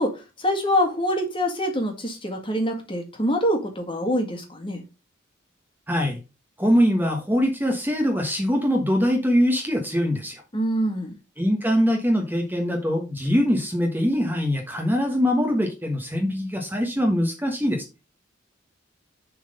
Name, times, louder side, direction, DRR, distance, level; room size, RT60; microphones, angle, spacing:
voice 1, 0.0-4.8 10.5-11.2, equal, 25° left, 1.7 m, -25 dB
voice 2, 5.9-6.2 6.6-10.4 11.4-17.8, equal, 10° right, 1.1 m, -22 dB
7.1 x 4.0 x 5.2 m
head